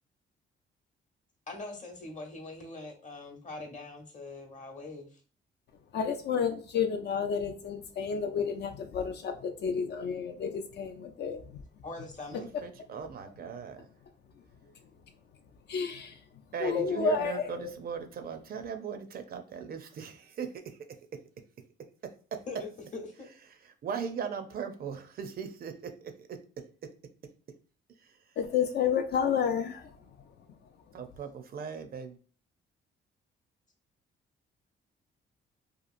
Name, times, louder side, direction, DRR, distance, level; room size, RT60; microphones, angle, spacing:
voice 1, 1.5-5.2 11.8-12.4 22.5-23.3, left 3 dB, 40° left, 0.9 m, -42 dB
voice 2, 5.9-11.4 15.7-16.2 16.6-17.5 28.4-29.9, left 6 dB, 55° left, 0.4 m, -30 dB
voice 3, 12.3-13.9 16.5-19.4 19.7-21.2 22.0-22.4 23.5-26.9 28.0-28.2 30.9-32.2, right 6 dB, 50° right, 0.4 m, -39 dB
2.8 x 2.4 x 2.4 m
cardioid pair, 90°, 20 cm